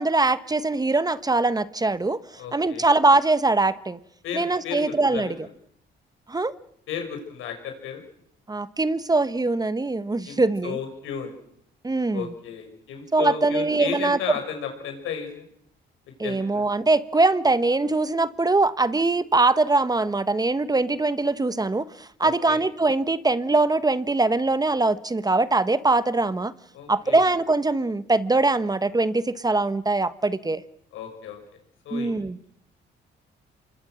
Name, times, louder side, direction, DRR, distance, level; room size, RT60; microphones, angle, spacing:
voice 1, 0.0-2.2 2.5-4.0 4.3-5.5 6.3-6.5 8.5-10.8 11.8-12.3 13.1-14.2 16.2-26.5 26.9-30.6 31.9-32.4, right 3 dB, 20° right, 1.1 m, -22 dB
voice 2, 2.4-2.9 4.2-5.3 6.9-8.0 10.2-11.3 12.1-15.4 16.2-16.6 22.2-22.6 26.7-27.2 30.9-31.4 31.8-32.1, left 7 dB, 90° left, 6.1 m, -34 dB
27.0 x 21.5 x 6.4 m
cardioid pair, 90°, 20 cm